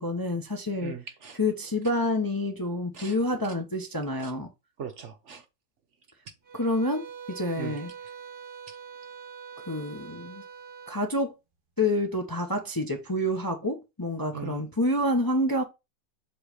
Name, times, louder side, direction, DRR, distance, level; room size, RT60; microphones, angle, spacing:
voice 1, 0.0-0.9 1.4-4.5 6.5-7.9 9.7-10.4 10.9-11.3 11.8-15.6, left 1 dB, 20° left, 0.7 m, -28 dB
voice 2, 0.8-1.4 2.9-3.2 4.2-4.3 4.8-5.4 7.6-7.8 14.3-14.7, right 7 dB, 60° right, 0.9 m, -39 dB
sound 1, 6.4-11.0, right 7 dB, 35° right, 1.5 m, -44 dB
7.8 x 3.1 x 4.9 m
omnidirectional pair, 1.6 m